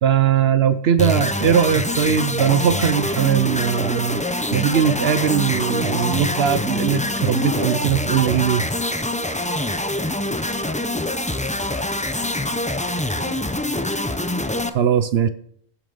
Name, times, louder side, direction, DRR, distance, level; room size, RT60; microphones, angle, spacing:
voice 1, 0.0-4.2 4.5-8.6 14.7-15.3, right 8 dB, 65° right, 12 dB, 0.9 m, -19 dB
sound 1, 1.0-14.7, left 1 dB, 10° left, 0.5 m, -25 dB
sound 2, 3.0-9.7, left 1 dB, 85° left, 2.6 m, -43 dB
voice 2, 8.9-13.7, equal, 35° left, -3 dB, 5.2 m, -46 dB
15.0 x 7.1 x 5.4 m, 0.65 s
omnidirectional pair, 1.1 m